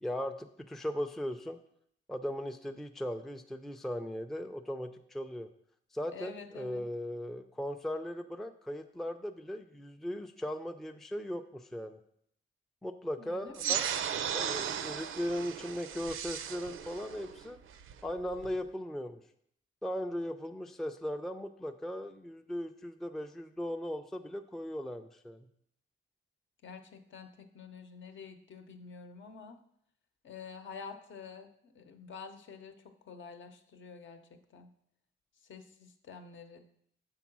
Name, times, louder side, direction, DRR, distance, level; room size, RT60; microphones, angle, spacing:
voice 1, 0.0-1.6 2.1-5.5 5.9-12.0 12.8-13.9 14.3-17.6 18.0-19.2 19.8-25.5, equal, ahead, 6 dB, 0.4 m, -38 dB
voice 2, 6.1-6.8 13.2-13.8 26.6-29.6 30.2-32.7 33.1-34.7 35.4-36.6, left 5 dB, 65° left, 6 dB, 0.8 m, -48 dB
sound 1, 13.5-18.6, right 8 dB, 75° right, 0.5 m, -36 dB
7.0 x 3.8 x 6.0 m, 0.70 s
cardioid pair, 105°, 21 cm